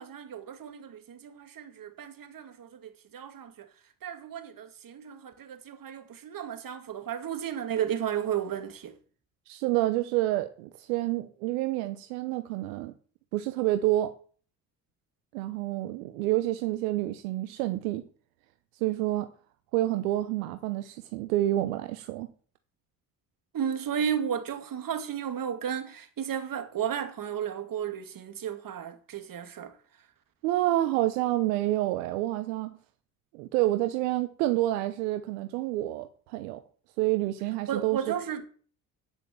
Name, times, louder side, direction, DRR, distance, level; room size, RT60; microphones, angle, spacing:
voice 1, 0.0-3.7 4.0-8.9 23.5-29.7 37.7-38.5, right 8 dB, 50° right, 2.3 m, -34 dB
voice 2, 9.5-12.9 13.3-14.1 15.3-18.0 18.8-19.3 19.7-22.3 30.4-32.7 33.3-36.6 37.0-38.1, right 15 dB, 80° right, 0.9 m, -28 dB
9.2 x 8.2 x 7.6 m
hypercardioid pair, 55°, 42 cm